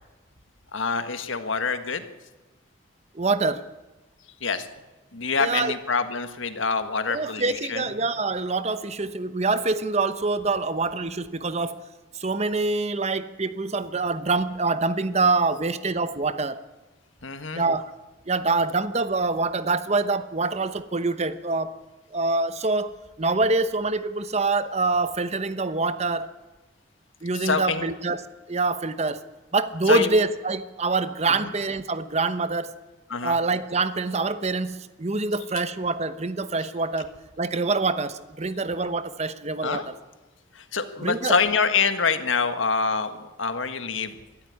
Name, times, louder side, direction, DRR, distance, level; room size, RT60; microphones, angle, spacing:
voice 1, 0.7-2.0 4.4-4.7 5.1-7.8 17.2-17.6 27.4-27.9 29.9-30.1 31.3-31.5 33.1-33.4 39.6-39.8 40.5-44.2, left 5 dB, 90° left, 9 dB, 1.7 m, -26 dB
voice 2, 3.1-3.6 5.4-5.7 7.1-11.8 12.1-16.6 17.6-17.9 18.3-21.7 22.1-22.9 23.2-26.3 27.2-28.2 28.5-29.2 29.5-32.7 33.2-37.1 37.4-39.9 41.0-41.4, right 3 dB, 35° right, 12 dB, 0.9 m, -25 dB
21.5 x 13.5 x 9.8 m, 1.2 s
head